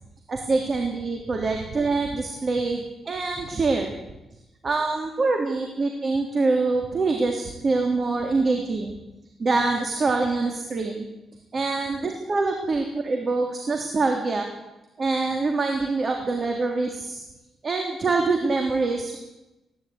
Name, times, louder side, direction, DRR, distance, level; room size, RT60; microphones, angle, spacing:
voice 1, 0.3-3.9 4.6-9.0 9.4-11.1 11.5-14.5 15.0-17.2 17.6-19.2, right 3 dB, 40° right, 3 dB, 3.3 m, -25 dB
20.0 x 16.5 x 9.5 m, 0.98 s
cardioid pair, 110°, 0 cm